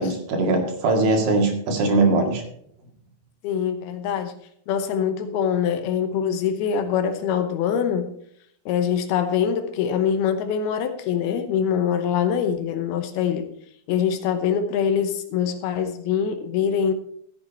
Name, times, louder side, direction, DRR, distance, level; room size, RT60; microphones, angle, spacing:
voice 1, 0.0-2.4, right 3 dB, 70° right, 2 dB, 3.8 m, -21 dB
voice 2, 3.4-4.4 4.7-8.1 8.7-13.5 13.9-16.9, left 8 dB, 80° left, 8 dB, 2.8 m, -24 dB
14.0 x 8.7 x 4.2 m, 0.68 s
omnidirectional pair, 4.5 m